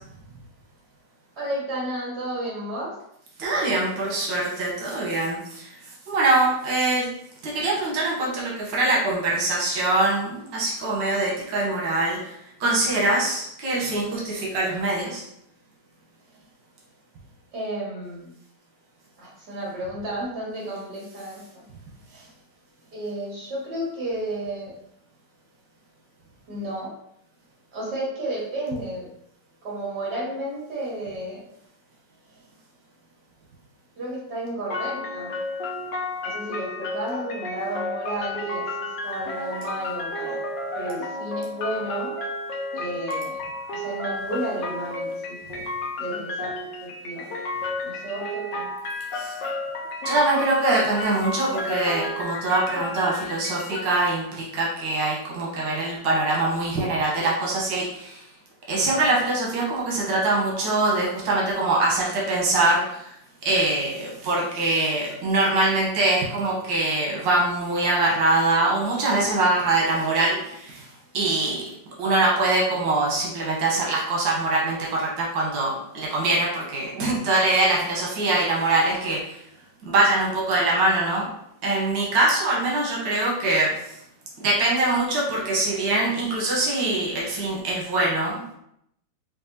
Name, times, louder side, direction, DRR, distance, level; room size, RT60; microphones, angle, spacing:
voice 1, 1.4-3.0 17.5-18.3 19.2-21.6 22.9-24.7 26.5-26.9 27.7-29.1 29.6-31.4 34.0-35.3 36.2-40.4 40.7-42.1 42.7-43.4 43.7-45.6 46.0-47.3 47.8-48.7, right 1 dB, 65° right, -5 dB, 2.1 m, -32 dB
voice 2, 3.4-5.7 6.1-7.1 7.4-12.3 12.6-15.2 49.1-49.4 50.0-58.2 58.7-63.1 63.4-70.9 71.1-71.6 72.0-79.4 79.9-81.3 81.6-83.7 84.4-88.5, right 2 dB, 85° right, -3 dB, 1.6 m, -23 dB
sound 1, 34.7-54.0, left 2 dB, 80° left, 1.3 m, -32 dB
5.2 x 2.6 x 2.7 m, 0.75 s
omnidirectional pair, 1.9 m